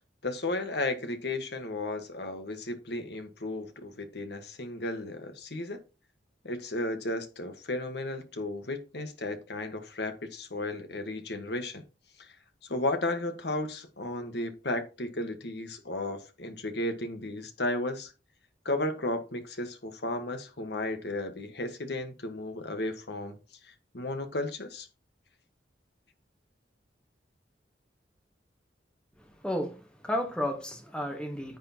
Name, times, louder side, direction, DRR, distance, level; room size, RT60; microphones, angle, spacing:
voice 1, 0.2-5.8 6.4-11.8 12.2-12.3 12.7-18.1 18.6-23.4 23.6-24.9, left 2 dB, 65° left, 1.5 m, -34 dB
voice 2, 29.4-31.6, left 1 dB, 5° left, 1.3 m, -32 dB
9.8 x 7.8 x 3.0 m
head